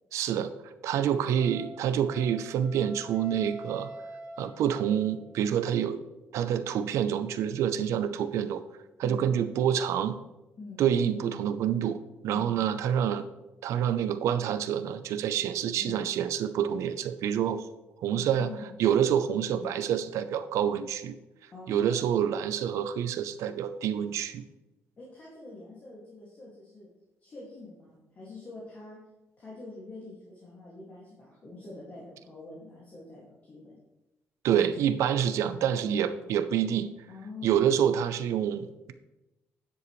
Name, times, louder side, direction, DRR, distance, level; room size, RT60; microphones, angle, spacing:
voice 1, 0.1-3.9 4.4-6.0 6.3-8.6 9.0-10.2 10.8-12.0 12.2-13.3 13.6-17.7 18.0-18.5 18.8-21.1 21.7-24.4 34.4-36.9 37.4-38.9, right 9 dB, 80° right, 11 dB, 0.6 m, -27 dB
Wind instrument woodwind instrument, 1.4-5.3, right 1 dB, 25° right, 2.4 m, -45 dB
voice 2, 18.1-18.7 19.5-19.7 21.5-22.1 25.0-26.9 27.2-29.0 29.4-33.8 35.4-36.2 37.1-37.6, left 3 dB, 35° left, -6 dB, 2.1 m, -45 dB
9.7 x 7.9 x 3.2 m, 1.0 s
cardioid pair, 150°, 5 cm